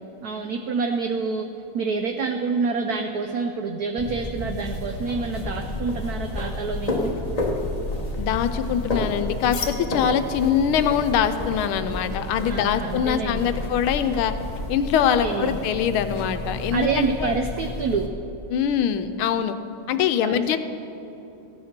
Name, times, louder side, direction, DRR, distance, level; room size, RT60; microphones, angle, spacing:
voice 1, 0.2-1.5 1.7-7.1 12.5-13.6 15.2-15.6 16.7-18.1 20.2-20.4, right 4 dB, 75° right, 4 dB, 0.9 m, -27 dB
sound 1, 4.0-18.1, left 1 dB, 25° left, 0.9 m, -31 dB
voice 2, 8.2-14.3 14.7-17.3 18.5-19.5 19.9-20.6, left 8 dB, 80° left, 10 dB, 1.5 m, -23 dB
sound 2, 9.5-15.1, left 3 dB, 50° left, 1.1 m, -42 dB
15.5 x 9.3 x 5.9 m, 2.9 s
omnidirectional pair, 2.4 m